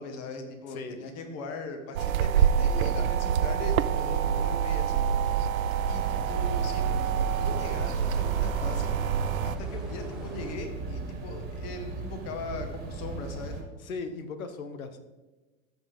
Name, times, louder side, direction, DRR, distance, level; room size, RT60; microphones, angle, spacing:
voice 1, 0.0-5.0 5.9-6.0 6.3-8.9 9.4-13.6, left 3 dB, 35° left, 5 dB, 1.5 m, -39 dB
voice 2, 0.7-1.0 13.8-15.1, left 4 dB, 85° left, 9 dB, 1.1 m, -38 dB
sound 1, 1.9-10.6, right 1 dB, ahead, 0.8 m, -47 dB
sound 2, 2.0-9.6, right 8 dB, 90° right, 0.5 m, -26 dB
sound 3, 6.0-13.6, right 3 dB, 25° right, 1.7 m, -38 dB
13.5 x 5.1 x 3.5 m, 1.2 s
hypercardioid pair, 130°, 41 cm